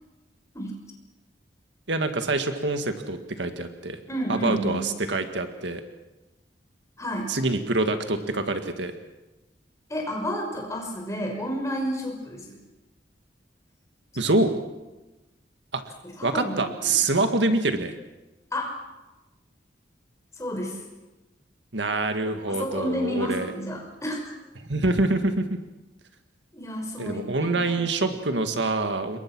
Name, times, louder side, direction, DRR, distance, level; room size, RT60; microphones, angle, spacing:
voice 1, 1.9-4.0 4.3-5.8 7.3-8.9 14.2-14.6 15.7-15.8 16.2-17.9 21.7-23.5 24.6-25.6 27.0-29.2, right 2 dB, 75° right, 7 dB, 1.9 m, -25 dB
voice 2, 4.1-4.9 7.0-7.3 9.9-12.6 14.2-14.3 16.0-17.0 18.5-18.8 20.4-20.8 22.5-24.3 26.5-28.2, equal, 15° left, 1 dB, 5.7 m, -31 dB
27.5 x 22.5 x 6.2 m, 1.1 s
head